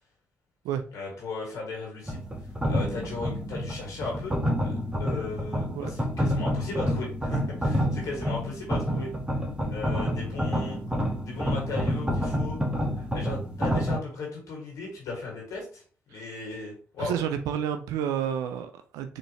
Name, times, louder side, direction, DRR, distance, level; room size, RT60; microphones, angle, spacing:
voice 1, 0.9-2.2 2.7-4.7 5.0-9.1 9.7-10.8 11.2-12.6 13.0-15.8 16.1-17.2, left 3 dB, 75° left, 1.9 m, -36 dB
sound 1, 2.1-14.0, equal, 15° right, 1.3 m, -28 dB
voice 2, 17.0-19.2, right 9 dB, 90° right, 0.4 m, -30 dB
4.0 x 3.3 x 3.0 m
supercardioid pair, 55°, 6 cm